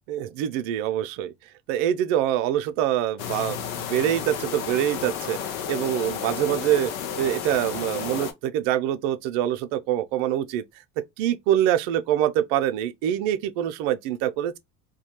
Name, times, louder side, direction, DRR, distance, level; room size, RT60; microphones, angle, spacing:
voice 1, 0.1-1.3 1.7-6.9 7.2-10.6 11.2-14.6, right 11 dB, 65° right, 0.5 m, -25 dB
sound 1, 3.2-8.3, left 8 dB, 80° left, 0.6 m, -32 dB
2.3 x 2.1 x 2.8 m
hypercardioid pair, 75°, 40 cm